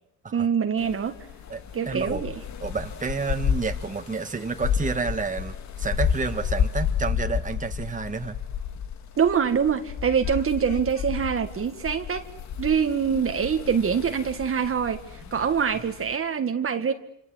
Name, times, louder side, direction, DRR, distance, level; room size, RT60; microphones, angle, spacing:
voice 1, 0.3-1.2 1.7-2.3 9.2-12.3 12.6-16.9, right 7 dB, 45° right, 6 dB, 1.9 m, -24 dB
sound 1, 0.8-16.2, left 7 dB, 65° left, 2.0 m, -31 dB
voice 2, 1.5-2.2 2.6-8.4, right 4 dB, 25° right, 6 dB, 2.1 m, -30 dB
27.5 x 26.5 x 8.0 m, 0.73 s
cardioid pair, 90°, 30 cm